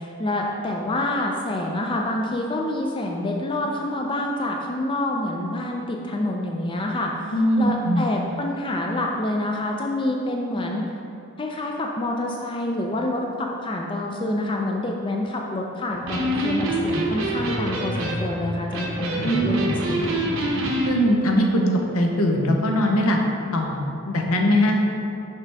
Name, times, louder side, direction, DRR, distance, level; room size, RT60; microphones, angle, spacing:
voice 1, 0.0-10.8 11.4-20.2, left 1 dB, 25° left, 0 dB, 0.3 m, -27 dB
voice 2, 7.3-8.0 19.2-19.6 20.9-23.2 23.5-24.7, equal, 85° left, 1 dB, 0.8 m, -21 dB
Electric guitar, 15.9-20.9, right 1 dB, 65° right, 0.9 m, -26 dB
5.7 x 5.7 x 3.4 m, 2.6 s
head